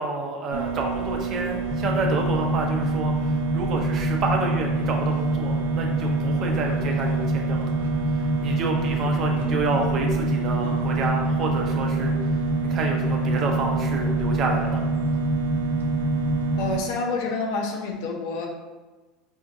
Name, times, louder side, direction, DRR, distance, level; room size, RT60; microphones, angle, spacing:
voice 1, 0.0-7.7 8.4-12.2 12.6-14.8, right 3 dB, 50° right, 1 dB, 0.7 m, -29 dB
sound 1, 0.5-16.8, right 7 dB, 85° right, 0.4 m, -30 dB
sound 2, 1.7-16.7, equal, 25° left, 0.5 m, -26 dB
voice 2, 16.6-18.5, left 3 dB, 65° left, 0 dB, 0.7 m, -28 dB
4.3 x 2.6 x 2.5 m, 1.2 s
hypercardioid pair, 80°, 0 cm